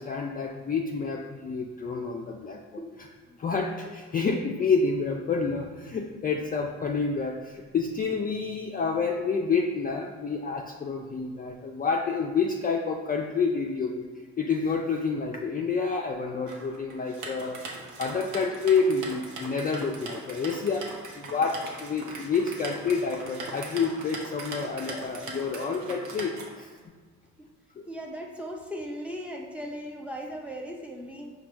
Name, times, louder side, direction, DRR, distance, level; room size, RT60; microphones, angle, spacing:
voice 1, 0.0-2.6 3.4-14.1 14.4-17.6 18.0-26.7 27.8-27.9, left 5 dB, 30° left, 0 dB, 0.4 m, -28 dB
sound 1, 16.5-26.8, right 3 dB, 85° right, 0.8 m, -40 dB
voice 2, 27.9-31.3, equal, 5° right, 0 dB, 0.7 m, -37 dB
5.1 x 2.3 x 4.4 m, 1.5 s
cardioid pair, 90°, 30 cm